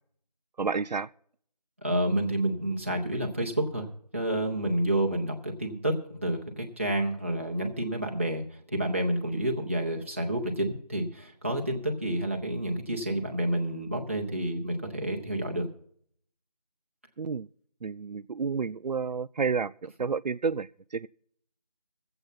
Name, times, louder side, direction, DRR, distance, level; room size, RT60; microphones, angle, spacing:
voice 1, 0.6-1.1 17.2-17.5 17.8-21.1, right 5 dB, 80° right, 0.4 m, -30 dB
voice 2, 1.8-3.9 4.1-15.7, right 1 dB, 20° right, 1.1 m, -29 dB
21.0 x 8.0 x 4.1 m
figure-of-eight pair, 175°, 21 cm